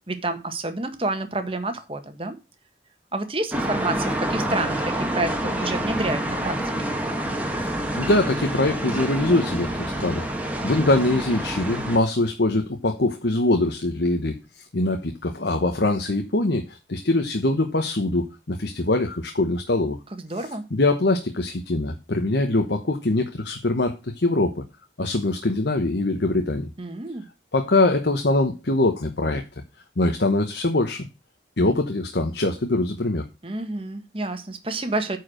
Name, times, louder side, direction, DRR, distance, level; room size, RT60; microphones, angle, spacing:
voice 1, 0.1-2.4 3.1-6.9 20.1-20.6 26.8-27.3 33.4-35.2, right 2 dB, 30° right, 1.4 m, -29 dB
sound 1, 3.5-12.0, right 1 dB, 10° right, 1.6 m, -27 dB
voice 2, 7.9-10.3 10.6-20.0 20.7-24.6 25.0-26.7 27.5-29.4 30.0-31.1 31.6-33.3, left 2 dB, 80° left, 1.1 m, -23 dB
9.4 x 4.8 x 6.4 m
head